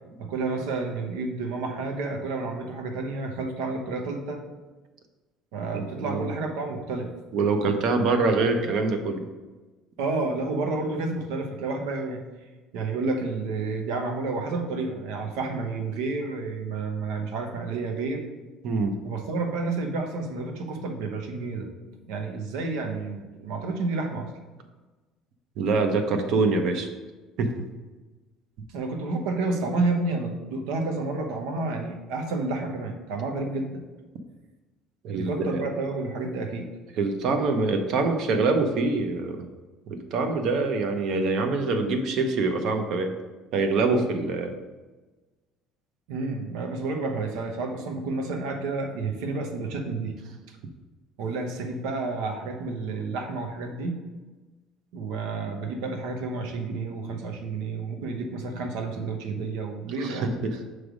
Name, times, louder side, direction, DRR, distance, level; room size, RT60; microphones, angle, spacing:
voice 1, 0.2-4.4 5.5-7.1 10.0-12.2 12.7-18.2 19.0-21.7 22.1-24.3 28.7-33.8 35.1-36.7 46.1-50.1 51.2-54.0 54.9-60.3, right 3 dB, 85° right, 4 dB, 0.9 m, -30 dB
voice 2, 5.7-6.2 7.3-9.2 18.6-19.0 25.6-26.9 27.4-27.6 35.0-35.6 37.0-39.5 39.9-43.1 43.5-44.6 60.0-60.7, right 3 dB, 55° right, 6 dB, 0.7 m, -25 dB
6.1 x 3.3 x 5.1 m, 1.2 s
cardioid pair, 165°, 0 cm